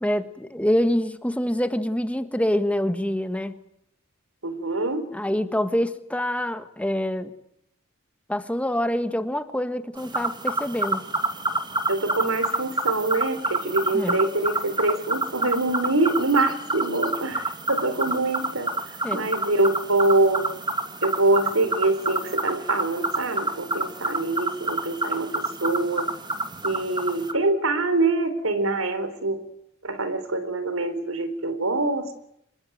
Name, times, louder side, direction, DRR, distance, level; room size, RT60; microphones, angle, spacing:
voice 1, 0.0-3.6 5.1-7.3 8.3-11.0 13.9-14.2 19.0-19.3, left 1 dB, 5° left, 10 dB, 1.5 m, -26 dB
voice 2, 4.4-5.1 11.9-18.7 19.1-20.5 21.0-26.1 26.6-29.4 29.8-32.2, right 2 dB, 80° right, 11 dB, 3.9 m, -24 dB
sound 1, 10.0-27.3, right 2 dB, 20° right, 2.4 m, -28 dB
26.0 x 22.5 x 9.3 m, 0.76 s
head